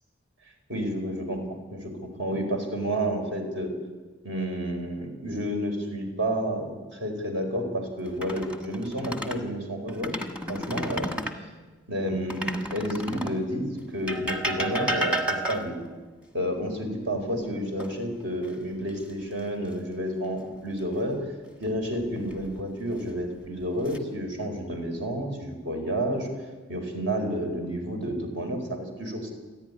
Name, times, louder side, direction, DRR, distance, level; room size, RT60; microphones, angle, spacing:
voice 1, 0.7-1.4 1.7-3.7 4.2-10.2 10.5-11.1 11.9-15.8 16.3-21.2 21.6-26.3 26.7-29.3, equal, 60° right, 4 dB, 4.6 m, -30 dB
sound 1, 8.1-9.4 9.9-11.4 12.3-13.4 14.1-15.9 17.8-18.5 18.9-19.1 22.0-22.6 23.3-24.0, equal, 5° right, 1.3 m, -32 dB
28.5 x 11.0 x 9.8 m, 1.3 s
head